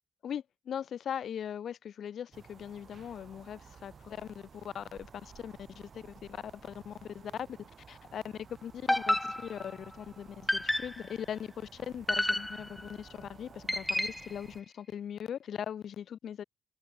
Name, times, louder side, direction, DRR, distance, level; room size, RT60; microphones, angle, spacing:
voice 1, 0.2-7.6 7.9-10.3 10.6-16.4, left 9 dB, 60° left, 2.3 m, -40 dB
sound 1, 2.3-14.6, right 6 dB, 45° right, 4.4 m, -55 dB
sound 2, 8.9-9.9 10.5-11.2 12.1-12.9 13.7-14.4, left 1 dB, 10° left, 0.6 m, -31 dB
cardioid pair, 90°, 0 cm